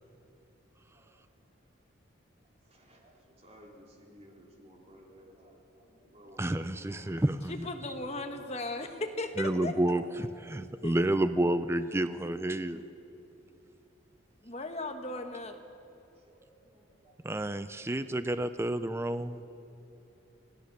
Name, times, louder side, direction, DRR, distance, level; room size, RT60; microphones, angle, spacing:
voice 1, 0.9-1.4 2.6-7.4 16.1-17.2 18.2-18.3, equal, 30° right, -1 dB, 3.2 m, -57 dB
voice 2, 6.4-7.7 9.4-12.8 17.2-19.5, right 1 dB, 10° right, 12 dB, 0.4 m, -30 dB
voice 3, 7.5-9.7 10.8-11.0 14.4-15.6, left 2 dB, 30° left, 6 dB, 1.3 m, -37 dB
26.0 x 16.0 x 6.8 m, 2.9 s
head